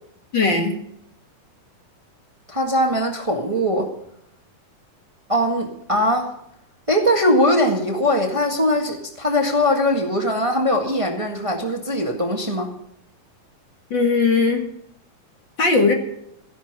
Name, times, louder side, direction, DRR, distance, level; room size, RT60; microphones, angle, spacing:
voice 1, 0.3-0.8 13.9-14.7 15.6-15.9, left 4 dB, 40° left, 3 dB, 2.1 m, -18 dB
voice 2, 2.5-3.9 5.3-6.3 6.9-12.7, left 1 dB, 45° right, 2 dB, 0.4 m, -21 dB
15.0 x 11.0 x 6.7 m, 0.76 s
omnidirectional pair, 4.1 m